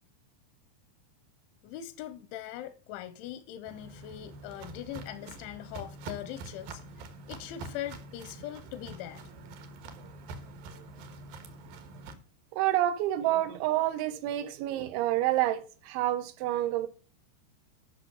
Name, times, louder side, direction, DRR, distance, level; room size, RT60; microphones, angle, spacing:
voice 1, 1.6-9.2, left 12 dB, 85° left, 3.1 m, -41 dB
Walk footsteps, 3.7-12.1, right 3 dB, 65° right, 2.7 m, -45 dB
voice 2, 12.5-16.9, right 14 dB, 85° right, 3.2 m, -28 dB
11.0 x 6.2 x 6.7 m
omnidirectional pair, 5.3 m